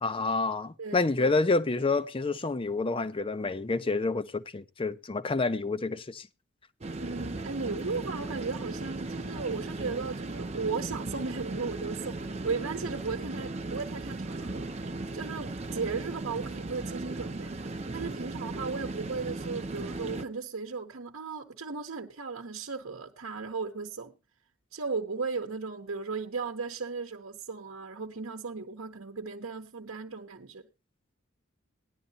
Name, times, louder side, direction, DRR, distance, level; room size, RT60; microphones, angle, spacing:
voice 1, 0.0-6.3, left 3 dB, 25° left, 0.5 m, -28 dB
voice 2, 0.8-1.3 7.0-14.7 15.1-17.5 17.9-24.1 24.7-30.6, right 4 dB, 65° right, 0.9 m, -36 dB
sound 1, 6.8-20.2, right 2 dB, 30° right, 0.6 m, -37 dB
17.5 x 11.0 x 2.7 m
head